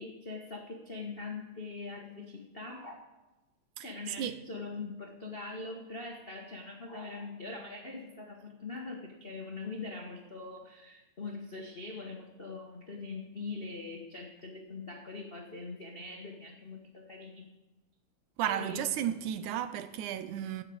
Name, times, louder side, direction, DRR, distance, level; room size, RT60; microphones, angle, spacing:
voice 1, 0.0-3.0 3.8-17.5 18.4-18.9, left 3 dB, 75° left, 0.5 m, -42 dB
voice 2, 18.4-20.6, right 10 dB, 90° right, 2.3 m, -33 dB
16.5 x 6.6 x 7.8 m
omnidirectional pair, 3.4 m